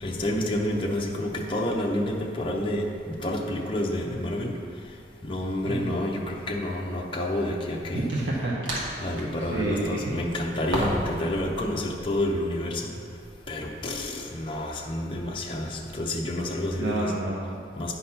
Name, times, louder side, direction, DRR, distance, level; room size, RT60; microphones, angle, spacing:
voice 1, 0.0-4.6 5.2-8.1 9.0-12.9 13.5-17.1 17.8-17.9, left 1 dB, 30° left, -2 dB, 0.7 m, -29 dB
voice 2, 5.6-5.9 7.9-8.7 9.5-10.1 15.5-15.6 16.8-17.6, right 2 dB, 75° right, -4 dB, 0.8 m, -29 dB
plastic trunking body, 5.8-5.9 8.1-9.4 10.7-11.2 11.5-12.3, right 1 dB, 90° right, 1.7 m, -33 dB
10.0 x 4.1 x 5.7 m, 2.3 s
head